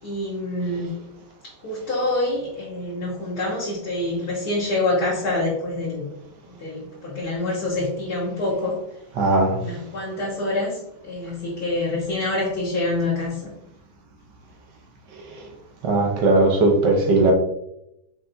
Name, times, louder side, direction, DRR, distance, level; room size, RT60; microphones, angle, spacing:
voice 1, 0.0-0.9 1.4-6.1 6.5-8.8 9.6-13.5, left 2 dB, 55° left, -5 dB, 1.3 m, -26 dB
voice 2, 9.2-9.6 15.8-17.3, right 2 dB, 65° right, 1 dB, 1.2 m, -18 dB
5.4 x 3.3 x 2.6 m, 0.83 s
omnidirectional pair, 2.3 m